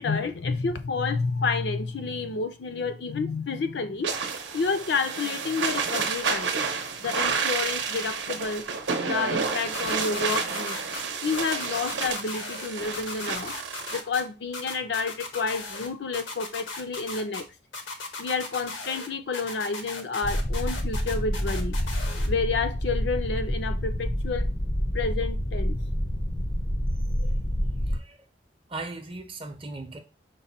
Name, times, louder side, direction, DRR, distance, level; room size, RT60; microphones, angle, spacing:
voice 1, 0.0-4.1 4.5-6.6 7.0-8.7 9.0-10.8 11.2-13.5 13.9-17.5 18.2-21.7 22.3-24.5 24.9-25.8 27.2-27.3, left 4 dB, 65° left, 0.5 m, -29 dB
sound 1, 4.0-14.0, right 5 dB, 75° right, 0.7 m, -30 dB
sound 2, 9.7-11.0 11.3-12.7 12.9-14.2 14.5-15.9 16.1-17.4 17.7-19.1 19.3-22.3, left 3 dB, 85° left, 0.9 m, -37 dB
sound 3, 20.2-28.0, equal, 20° left, 0.4 m, -28 dB
voice 2, 27.9-28.2 28.7-30.0, right 2 dB, 30° right, 0.6 m, -38 dB
5.3 x 2.2 x 4.1 m
head